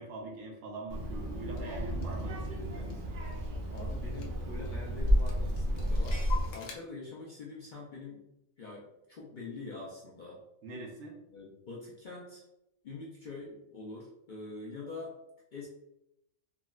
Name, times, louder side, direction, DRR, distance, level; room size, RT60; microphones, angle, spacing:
voice 1, 0.0-2.9 10.6-11.2, right 2 dB, 80° right, -1 dB, 1.1 m, -43 dB
Child speech kid speaking, 0.9-6.5, equal, 55° right, 0.6 m, -32 dB
Clock, 1.6-1.7 2.0-3.5 3.8-3.9 4.1-4.8 5.1-6.7, left 5 dB, 80° left, 1.0 m, -45 dB
voice 2, 3.7-6.2 6.5-8.2 8.6-10.4 11.3-12.4 12.8-15.2 15.5-15.7, left 3 dB, 55° left, -5 dB, 0.5 m, -44 dB
3.7 x 2.1 x 2.3 m, 0.85 s
omnidirectional pair, 1.3 m